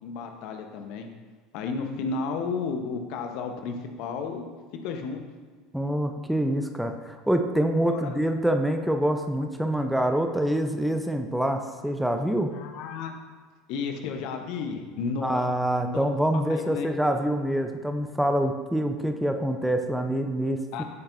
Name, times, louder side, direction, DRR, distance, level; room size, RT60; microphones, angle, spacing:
voice 1, 0.0-1.1 1.5-4.5 4.8-5.2 7.8-8.2 12.5-13.1 13.7-15.5 15.9-16.1 16.5-16.9 20.7-20.8, left 5 dB, 55° left, 5 dB, 1.1 m, -32 dB
voice 2, 5.7-12.5 15.2-20.8, right 1 dB, 5° right, 5 dB, 0.8 m, -26 dB
15.0 x 8.7 x 2.8 m, 1.5 s
figure-of-eight pair, 70°, 0 cm